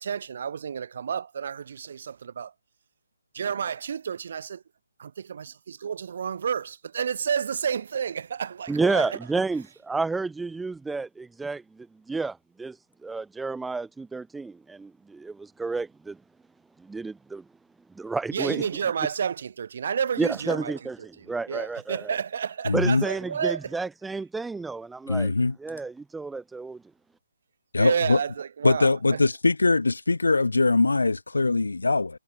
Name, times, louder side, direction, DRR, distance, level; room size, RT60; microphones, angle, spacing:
voice 1, 0.0-2.5 3.3-4.6 5.3-9.5 18.3-23.8 27.8-29.2, right 7 dB, 50° right, 3.0 m, -30 dB
voice 2, 8.7-11.6 12.1-12.7 13.0-16.1 16.9-17.4 18.0-18.6 20.2-20.9 21.3-22.0 22.7-25.3 25.6-26.8, right 3 dB, 5° right, 0.6 m, -30 dB
voice 3, 22.6-23.0 25.1-25.6 27.7-28.2 28.6-32.1, left 3 dB, 75° left, 1.3 m, -22 dB
figure-of-eight pair, 140°, 0 cm